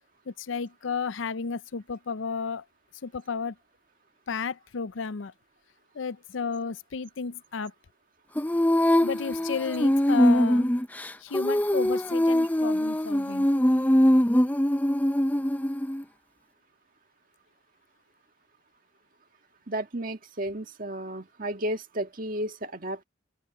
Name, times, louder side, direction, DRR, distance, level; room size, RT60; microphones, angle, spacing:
voice 1, 0.3-2.6 3.0-3.6 4.3-5.3 5.9-7.7 9.0-10.7 11.2-13.5, left 5 dB, 80° left, 0.6 m, -32 dB
Female singing, 8.4-16.0, equal, 10° left, 0.6 m, -23 dB
voice 2, 19.7-23.0, right 1 dB, 45° right, 1.7 m, -33 dB
open air
head